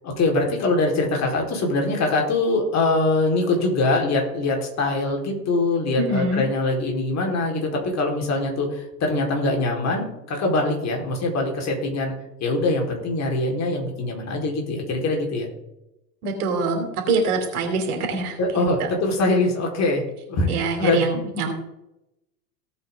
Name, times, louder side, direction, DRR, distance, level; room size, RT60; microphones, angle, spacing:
voice 1, 0.0-12.1 12.4-15.5 18.4-20.0 20.3-21.1, left 2 dB, 30° left, 1 dB, 4.3 m, -23 dB
voice 2, 6.0-6.4 16.2-18.4 20.5-21.5, right 3 dB, 65° right, 4 dB, 3.5 m, -24 dB
18.0 x 8.4 x 3.8 m, 0.89 s
figure-of-eight pair, 90°, 50 cm